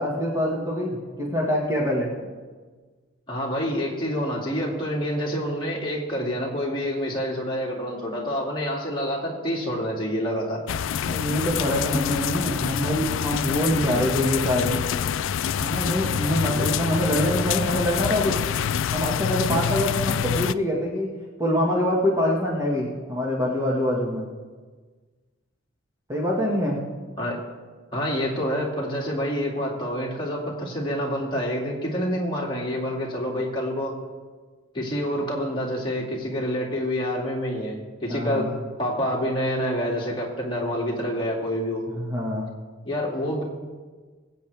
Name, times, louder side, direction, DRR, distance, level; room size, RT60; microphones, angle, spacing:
voice 1, 0.0-2.1 11.1-14.8 15.6-18.3 18.9-21.1 21.4-24.3 26.1-26.8 38.1-38.5 41.9-42.5, left 1 dB, 15° right, -4 dB, 1.8 m, -25 dB
voice 2, 3.3-10.6 27.2-27.4 27.9-33.9 34.7-38.5 38.8-41.8 42.8-43.4, equal, 25° left, -4 dB, 2.5 m, -27 dB
sound 1, 10.7-20.5, left 8 dB, 70° left, 0.3 m, -26 dB
23.5 x 8.0 x 3.5 m, 1.4 s
head